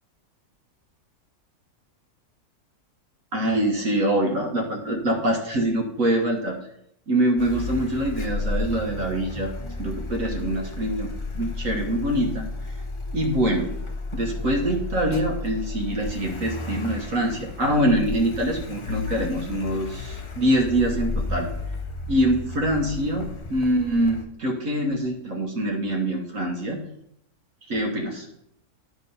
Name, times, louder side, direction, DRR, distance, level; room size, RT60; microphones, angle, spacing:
voice 1, 3.3-6.6 7.1-11.1 11.3-12.5 13.1-13.7 14.1-21.5 22.1-26.8 27.7-28.3, right 1 dB, 60° right, 0 dB, 1.6 m, -24 dB
Car, 7.4-24.2, left 2 dB, 45° left, 0.3 m, -33 dB
sound 1, 18.9-22.4, left 7 dB, 85° left, 1.2 m, -37 dB
11.0 x 4.4 x 5.5 m, 0.76 s
omnidirectional pair, 1.6 m